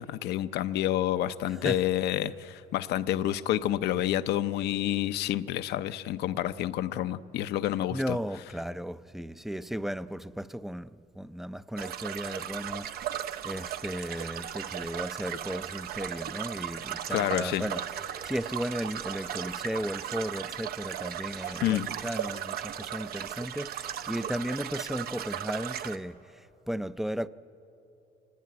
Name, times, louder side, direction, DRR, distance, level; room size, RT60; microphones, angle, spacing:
voice 1, 0.0-8.2 17.1-17.7 21.6-21.9, left 12 dB, 75° left, 0.7 m, -29 dB
voice 2, 1.5-1.8 7.9-17.8 18.1-27.3, equal, ahead, 0.5 m, -35 dB
sound 1, 11.8-26.0, right 10 dB, 65° right, 0.9 m, -36 dB
25.0 x 18.5 x 9.6 m
cardioid pair, 110°, 17 cm